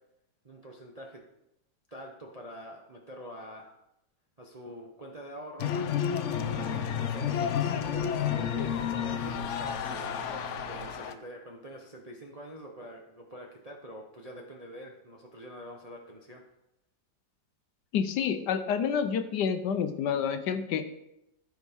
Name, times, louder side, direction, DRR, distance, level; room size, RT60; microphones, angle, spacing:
voice 1, 0.4-1.2 1.9-3.8 4.4-5.7 6.3-10.1 10.7-16.4, equal, 35° right, 0 dB, 0.6 m, -46 dB
sound 1, 5.6-11.1, left 8 dB, 90° left, 0.6 m, -31 dB
sound 2, 5.8-10.9, right 4 dB, 60° right, 1.4 m, -47 dB
voice 2, 17.9-20.8, left 7 dB, 70° left, 9 dB, 1.2 m, -28 dB
14.0 x 5.3 x 3.5 m, 0.85 s
omnidirectional pair, 2.0 m